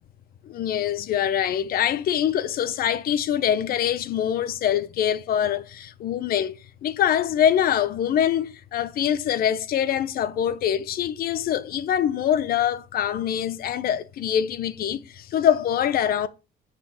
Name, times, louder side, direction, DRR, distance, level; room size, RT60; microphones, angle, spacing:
voice 1, 0.4-16.3, left 10 dB, 60° left, 0.9 m, -24 dB
6.6 x 5.9 x 6.5 m
cardioid pair, 110°, 17 cm